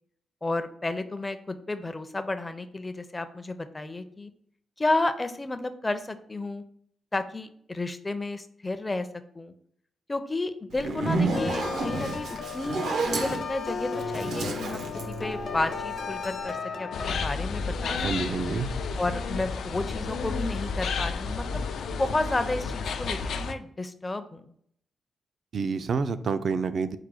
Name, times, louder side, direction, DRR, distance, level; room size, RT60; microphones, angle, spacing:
voice 1, 0.4-4.3 4.8-6.6 7.1-9.1 9.4-9.5 10.1-18.4 19.0-24.5, left 2 dB, 20° left, 9 dB, 0.4 m, -32 dB
Zipper (clothing), 10.7-16.0, right 3 dB, 85° right, 0.7 m, -30 dB
sound 1, 11.3-17.1, left 4 dB, 70° left, 0.9 m, -34 dB
sound 2, 16.9-23.5, left 4 dB, 85° left, 0.3 m, -31 dB
voice 2, 18.0-18.7 25.5-27.0, right 5 dB, 60° right, 11 dB, 0.3 m, -28 dB
4.8 x 2.2 x 4.7 m, 0.67 s
cardioid pair, 100°, 0 cm